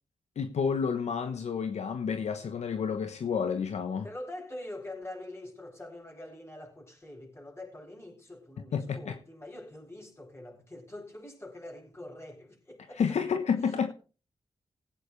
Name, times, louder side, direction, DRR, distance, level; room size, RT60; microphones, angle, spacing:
voice 1, 0.4-4.1 8.7-9.2 13.0-13.9, left 6 dB, 65° left, 1.1 m, -30 dB
voice 2, 4.0-13.2 13.6-13.9, left 1 dB, 20° left, 7.3 m, -44 dB
18.5 x 9.2 x 3.3 m
cardioid pair, 55°, 12 cm